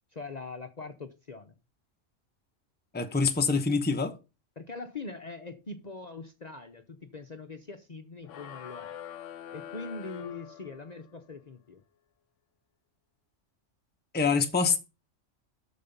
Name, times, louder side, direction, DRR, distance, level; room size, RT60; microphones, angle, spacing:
voice 1, 0.1-1.5 4.6-8.9 9.5-11.8, left 3 dB, 40° left, 0.8 m, -42 dB
voice 2, 2.9-4.2 14.1-14.8, left 4 dB, 10° left, 0.7 m, -25 dB
sound 1, 8.2-11.1, left 10 dB, 75° left, 1.0 m, -44 dB
12.5 x 4.2 x 5.3 m
omnidirectional pair, 1.3 m